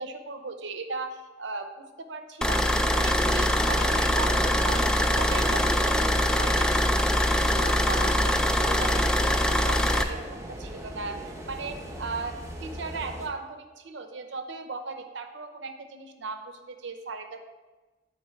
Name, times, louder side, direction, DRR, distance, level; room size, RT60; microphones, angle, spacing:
voice 1, 0.0-7.2 7.6-17.4, right 3 dB, 70° right, 7 dB, 0.7 m, -37 dB
sound 1, 2.4-10.0, left 1 dB, 5° left, 0.3 m, -23 dB
sound 2, 3.1-13.3, equal, 15° right, 0.8 m, -38 dB
8.2 x 4.3 x 4.4 m, 1.2 s
head